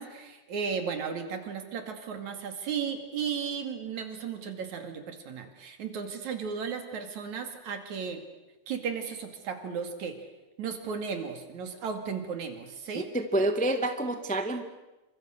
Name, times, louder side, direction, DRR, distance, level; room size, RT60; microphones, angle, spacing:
voice 1, 0.0-8.2 8.7-10.2 10.6-13.1, right 6 dB, 65° right, 6 dB, 3.8 m, -35 dB
voice 2, 12.9-14.6, right 1 dB, 5° left, 7 dB, 0.9 m, -28 dB
29.0 x 25.5 x 6.6 m, 1.1 s
omnidirectional pair, 3.6 m